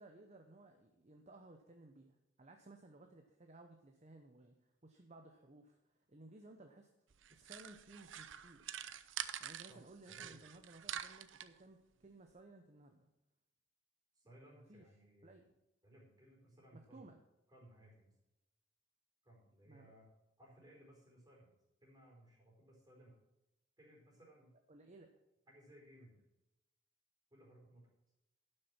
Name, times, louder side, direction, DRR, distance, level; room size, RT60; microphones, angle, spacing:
voice 1, 0.0-4.5 4.8-6.9 7.3-8.8 9.4-13.1 14.5-14.8 15.2-15.4 16.7-17.2 19.7-20.0 24.7-25.1, right 2 dB, 35° right, 5 dB, 0.8 m, -59 dB
sound 1, 7.1-9.7 10.0-11.5, right 10 dB, 80° right, 0.6 m, -46 dB
voice 2, 9.7-10.4 14.1-15.5 15.8-17.1 17.5-18.1 19.2-20.1 20.4-21.5 21.8-23.2 23.8-24.5 25.5-26.2 27.3-27.9, right 1 dB, 20° right, -3 dB, 4.4 m, -62 dB
11.5 x 6.5 x 6.0 m, 0.92 s
head